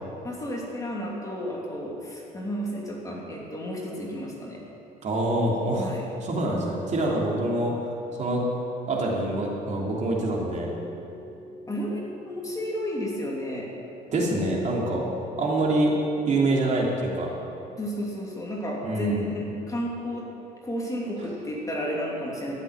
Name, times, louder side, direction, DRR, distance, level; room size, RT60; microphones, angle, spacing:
voice 1, 0.2-4.6 5.8-6.0 11.7-12.0 12.3-13.7 17.8-20.3 20.6-22.5, equal, 20° left, -3 dB, 2.8 m, -32 dB
voice 2, 5.0-5.9 6.2-7.7 8.2-8.4 8.9-10.7 14.1-15.0 15.4-15.9 16.3-17.3 18.8-19.3, right 2 dB, 45° right, -2 dB, 2.9 m, -25 dB
sound 1, 10.2-16.7, left 1 dB, 40° left, 3.0 m, -44 dB
13.5 x 7.5 x 9.6 m, 2.8 s
cardioid pair, 110°, 17 cm